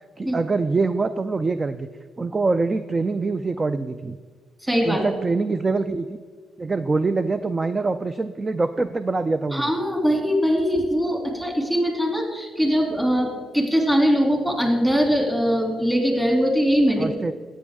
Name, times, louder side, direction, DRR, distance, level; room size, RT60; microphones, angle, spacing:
voice 1, 0.2-1.9 2.2-4.2 4.8-6.2 6.6-9.7 17.0-17.3, right 3 dB, 25° right, 11 dB, 0.4 m, -24 dB
voice 2, 4.6-5.0 9.5-17.1, equal, 10° right, 1 dB, 2.7 m, -21 dB
13.5 x 8.7 x 3.6 m, 1.5 s
cardioid pair, 90°, 0 cm